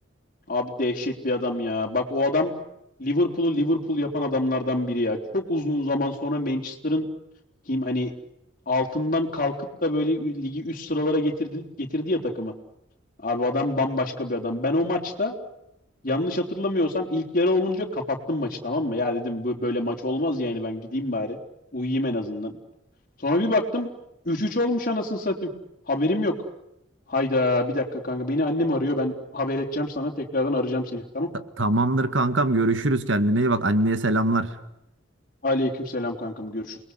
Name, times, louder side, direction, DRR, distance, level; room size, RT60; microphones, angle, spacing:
voice 1, 0.5-2.5 3.0-7.1 7.7-8.1 8.7-9.5 9.8-12.5 13.2-15.3 16.0-21.4 21.7-22.6 23.2-23.9 24.3-25.5 25.9-26.4 27.1-31.3 35.4-36.8, left 2 dB, 45° left, 1 dB, 3.8 m, -26 dB
voice 2, 31.6-34.5, right 2 dB, 75° right, 11 dB, 1.8 m, -22 dB
29.0 x 21.5 x 8.1 m, 0.82 s
head